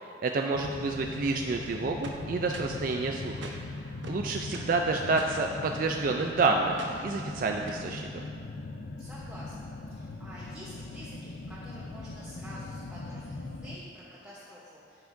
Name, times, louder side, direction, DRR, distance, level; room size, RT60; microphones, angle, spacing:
voice 1, 0.0-3.4 3.8-8.2, right 3 dB, 50° right, 2 dB, 0.4 m, -29 dB
sound 1, 0.5-13.8, left 2 dB, 80° left, 0.6 m, -40 dB
sound 2, 2.0-2.8 3.4-3.6 4.0-4.8 5.2-5.4 6.8-7.1 7.7-7.9, right 2 dB, 80° right, 0.8 m, -43 dB
voice 2, 9.0-15.0, equal, 5° right, -9 dB, 1.0 m, -48 dB
14.5 x 5.7 x 2.6 m, 2.5 s
head